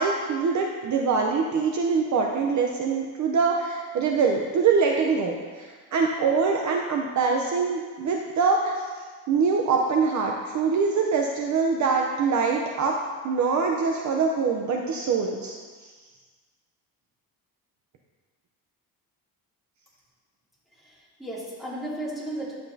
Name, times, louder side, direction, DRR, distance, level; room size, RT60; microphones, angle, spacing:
voice 1, 0.0-8.7 9.3-13.0 13.2-15.5, right 5 dB, 50° right, 1 dB, 0.7 m, -24 dB
voice 2, 20.8-22.6, right 1 dB, ahead, -8 dB, 2.6 m, -34 dB
11.0 x 7.8 x 2.7 m, 1.5 s
cardioid pair, 130°, 38 cm